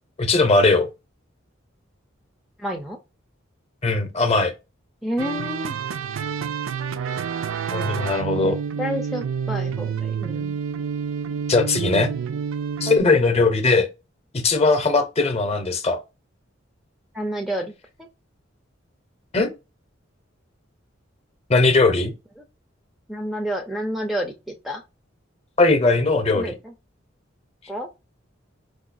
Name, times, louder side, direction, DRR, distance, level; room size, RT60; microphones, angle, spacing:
voice 1, 0.2-0.9 3.8-4.5 7.7-8.6 11.5-12.1 12.8-13.9 14.3-16.0 19.3-19.5 21.5-22.1 25.6-26.5, left 3 dB, 30° left, 0.7 m, -19 dB
voice 2, 2.6-3.0 5.0-5.7 8.4-8.5 8.8-10.6 17.1-17.7 23.1-24.3 24.6-24.8 26.3-26.5 27.7-27.9, equal, ahead, 0.4 m, -29 dB
sound 1, 5.2-13.0, right 7 dB, 85° right, 0.4 m, -28 dB
4.8 x 2.2 x 2.5 m
head